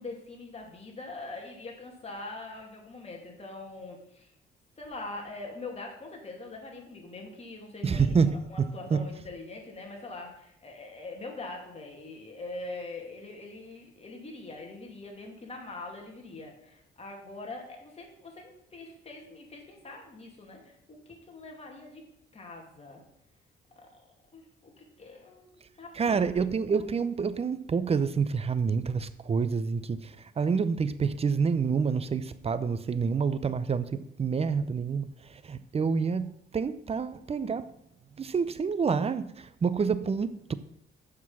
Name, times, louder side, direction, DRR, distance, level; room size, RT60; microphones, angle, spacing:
voice 1, 0.0-4.3 4.8-22.1 22.3-23.0 23.8-24.1 24.3-26.2, left 2 dB, 30° left, 2.7 m, -43 dB
voice 2, 7.8-9.1 25.9-37.7 38.2-40.5, right 5 dB, 30° right, 0.6 m, -28 dB
7.6 x 6.1 x 5.8 m
cardioid pair, 90°, 20 cm